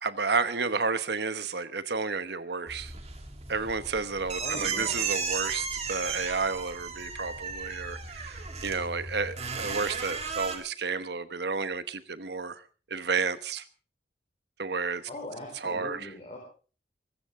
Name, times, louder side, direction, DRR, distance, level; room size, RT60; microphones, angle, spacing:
voice 1, 0.0-2.9 3.5-12.6 12.9-13.6 14.6-15.0 15.6-16.1, right 4 dB, 65° right, 1.1 m, -31 dB
sound 1, 2.7-10.6, right 5 dB, 35° right, 2.4 m, -35 dB
voice 2, 4.4-5.1 15.1-16.4, left 1 dB, 35° left, 4.1 m, -41 dB
23.5 x 14.0 x 3.7 m
head